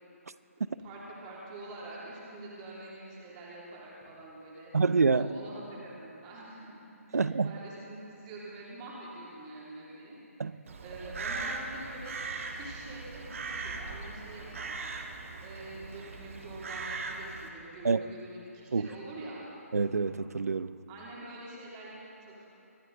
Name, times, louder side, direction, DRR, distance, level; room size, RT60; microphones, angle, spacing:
voice 1, 0.6-4.7 5.1-6.7 7.1-10.2 10.8-14.9 15.4-19.4 20.9-22.5, right 2 dB, 25° right, -5 dB, 2.6 m, -45 dB
voice 2, 4.7-5.3 7.1-7.5 10.4-10.5 17.8-18.0 18.7-18.9 19.7-20.8, right 4 dB, 85° right, 16 dB, 0.5 m, -26 dB
Crow, 10.7-17.5, right 3 dB, 60° right, 1.3 m, -39 dB
23.5 x 8.8 x 3.8 m, 2.8 s
figure-of-eight pair, 155°, 8 cm